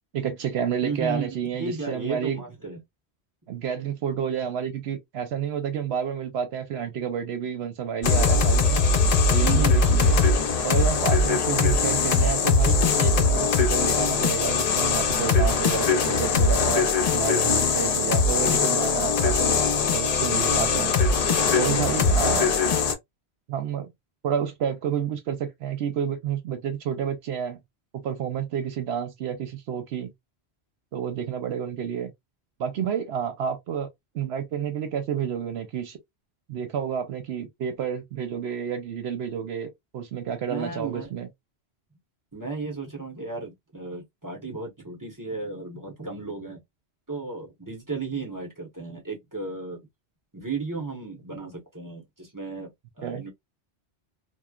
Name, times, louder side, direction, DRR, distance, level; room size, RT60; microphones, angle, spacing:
voice 1, 0.1-2.4 3.5-8.8 9.3-10.2 10.6-19.6 19.9-20.9 21.5-22.5 23.5-23.9 24.2-27.6 28.0-30.1 30.9-32.1 32.6-33.9 34.1-36.0 36.5-41.3 53.0-53.2, right 8 dB, 75° right, 0.8 m, -30 dB
voice 2, 0.8-2.8 9.4-10.1 40.4-41.1 42.3-46.6 47.1-49.8 50.3-52.7 53.0-53.3, right 4 dB, 20° right, 0.9 m, -34 dB
sound 1, 8.0-22.9, left 4 dB, 50° left, 0.5 m, -21 dB
3.0 x 2.1 x 2.3 m
omnidirectional pair, 1.1 m